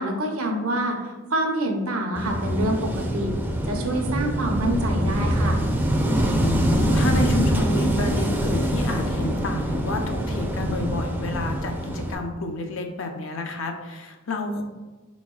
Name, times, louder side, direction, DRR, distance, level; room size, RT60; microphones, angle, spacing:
voice 1, 0.0-3.3 3.6-5.6, right 1 dB, 80° right, 2 dB, 0.8 m, -26 dB
Wind / Waves surf, 2.2-12.2, equal, 10° right, 0.4 m, -24 dB
voice 2, 6.4-14.6, left 2 dB, 65° left, 4 dB, 0.6 m, -30 dB
4.7 x 4.1 x 2.3 m, 1.2 s
head